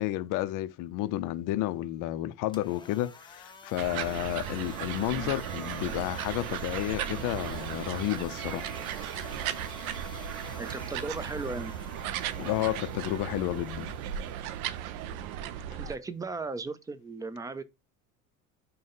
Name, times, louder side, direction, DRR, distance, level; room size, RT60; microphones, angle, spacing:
voice 1, 0.0-8.7 12.4-13.9, left 15 dB, 50° left, 0.5 m, -31 dB
sound 1, 2.4-16.4, left 3 dB, 10° left, 0.8 m, -49 dB
sound 2, 3.8-16.0, right 10 dB, 75° right, 0.6 m, -36 dB
sound 3, 7.0-14.7, right 6 dB, 40° right, 1.1 m, -51 dB
voice 2, 10.6-11.7 15.8-17.6, right 3 dB, 10° right, 0.3 m, -36 dB
4.8 x 2.2 x 4.0 m
hypercardioid pair, 75°, 42 cm